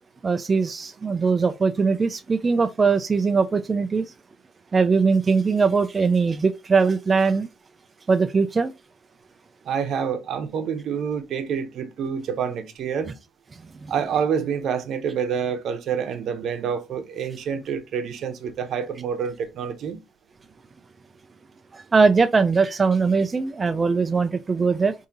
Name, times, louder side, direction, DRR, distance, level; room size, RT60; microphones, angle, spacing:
voice 1, 0.2-4.1 4.7-7.5 8.1-8.7 13.8-13.9 21.7-24.9, right 4 dB, 30° right, 0.3 m, -21 dB
voice 2, 9.6-13.1 13.9-20.0, right 7 dB, 70° right, 0.8 m, -27 dB
4.9 x 2.7 x 2.8 m
cardioid pair, 90°, 0 cm